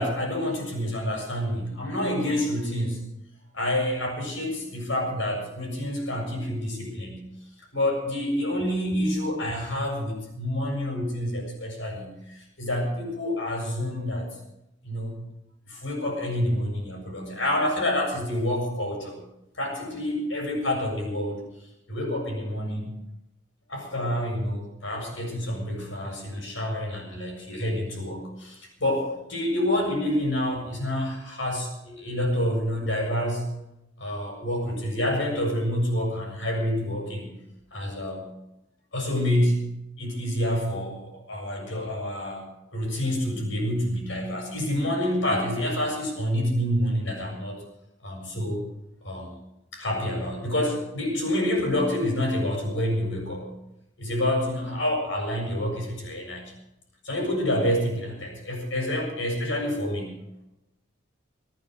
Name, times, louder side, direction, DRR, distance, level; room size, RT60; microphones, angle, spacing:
voice 1, 0.0-3.1 3.5-7.3 7.7-14.4 14.8-15.2 15.7-19.2 19.6-21.4 21.9-22.9 23.7-33.6 34.0-37.4 37.7-38.3 38.9-47.6 48.0-48.6 49.0-49.3 49.7-53.6 54.0-56.4 57.0-60.2, left 1 dB, 70° left, 1 dB, 7.2 m, -28 dB
24.0 x 9.1 x 6.4 m, 0.87 s
head